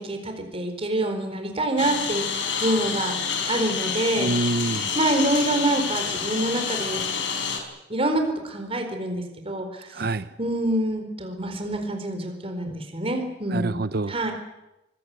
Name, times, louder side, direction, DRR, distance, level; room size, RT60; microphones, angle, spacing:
voice 1, 0.0-3.1 3.5-4.3 4.9-7.0 7.9-9.9 10.4-13.8 14.1-14.3, right 1 dB, 30° right, 5 dB, 4.4 m, -26 dB
Engine, 1.8-7.6, left 6 dB, 80° left, 4.6 m, -28 dB
voice 2, 4.2-4.9 9.9-10.3 13.5-14.1, right 2 dB, 55° right, 13 dB, 0.8 m, -26 dB
25.0 x 20.0 x 8.3 m, 0.94 s
head